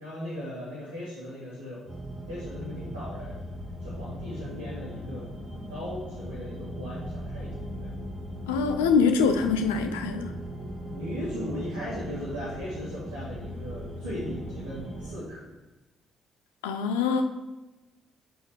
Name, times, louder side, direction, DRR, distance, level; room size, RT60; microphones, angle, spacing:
voice 1, 0.0-1.8 2.3-3.4 3.8-7.5 7.8-7.9 10.9-15.5, equal, 75° right, -10 dB, 2.6 m, -37 dB
sound 1, 1.9-15.2, equal, 35° right, 2.2 m, -38 dB
voice 2, 8.5-10.3 16.6-17.2, left 5 dB, 75° left, 6 dB, 0.7 m, -24 dB
9.1 x 8.2 x 3.2 m, 1.1 s
figure-of-eight pair, 45°, 0 cm